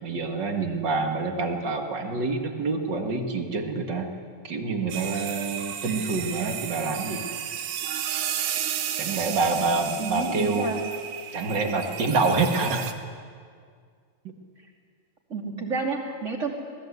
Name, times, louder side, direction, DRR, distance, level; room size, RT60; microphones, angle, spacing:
voice 1, 0.0-4.1 4.4-7.3 9.0-10.7 11.3-12.8 14.2-14.3, right 3 dB, 40° right, 4 dB, 2.0 m, -27 dB
sound 1, 4.9-12.9, right 9 dB, 85° right, 2.7 m, -33 dB
voice 2, 10.0-10.8 15.3-16.5, right 4 dB, 25° right, 1 dB, 2.8 m, -30 dB
26.5 x 19.0 x 8.1 m, 2.1 s
omnidirectional pair, 3.4 m